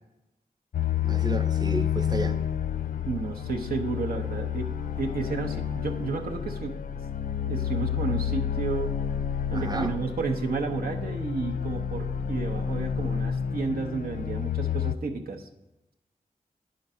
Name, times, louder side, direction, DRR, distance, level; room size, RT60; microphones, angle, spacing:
sound 1, 0.7-14.9, left 8 dB, 70° left, 0.4 m, -30 dB
voice 1, 1.0-2.4 9.5-10.0, right 2 dB, 25° right, 0.6 m, -32 dB
voice 2, 3.0-4.7 5.0-6.8 7.5-9.0 9.5-15.5, right 4 dB, 90° right, 0.8 m, -32 dB
9.5 x 3.9 x 5.5 m
cardioid pair, 60°, 15 cm